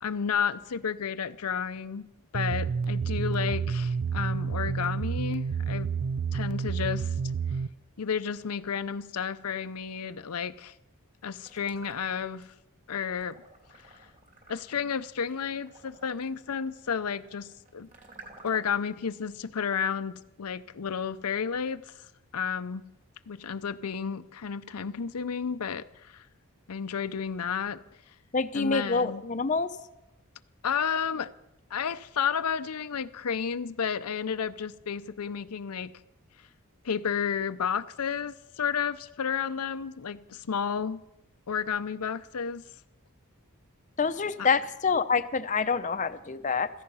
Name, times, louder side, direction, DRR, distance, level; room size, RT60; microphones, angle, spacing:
voice 1, 0.0-2.1 2.3-5.9 6.3-7.1 8.0-10.7 11.2-12.5 12.9-13.4 13.8-13.9 14.5-17.9 18.4-21.9 22.3-22.8 23.3-26.2 26.7-27.8 28.5-29.2 30.6-31.3 31.7-35.9 36.8-41.0 41.5-42.6 44.4-44.5, left 7 dB, 90° left, 0.6 m, -32 dB
sound 1, 2.3-7.7, right 5 dB, 75° right, 0.4 m, -29 dB
sound 2, 11.4-12.5 12.9-18.9, right 3 dB, 35° right, 2.9 m, -53 dB
voice 2, 28.3-29.7 44.0-46.7, left 5 dB, 35° left, 0.6 m, -26 dB
16.0 x 14.5 x 5.5 m
head